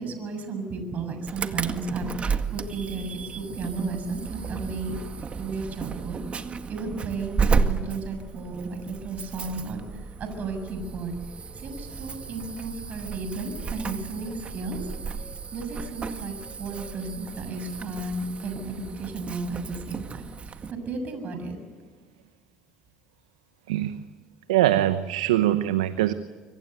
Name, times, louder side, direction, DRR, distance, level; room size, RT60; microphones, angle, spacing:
voice 1, 0.0-5.0 5.4-6.2 6.5-11.1 11.5-14.9 15.5-21.6, right 3 dB, 50° right, 7 dB, 7.0 m, -34 dB
Insect / Alarm, 1.3-20.7, right 5 dB, 35° right, 2.0 m, -33 dB
voice 2, 24.5-26.1, right 13 dB, 85° right, 12 dB, 0.9 m, -22 dB
25.5 x 25.0 x 8.1 m, 1.5 s
hypercardioid pair, 65°, 3 cm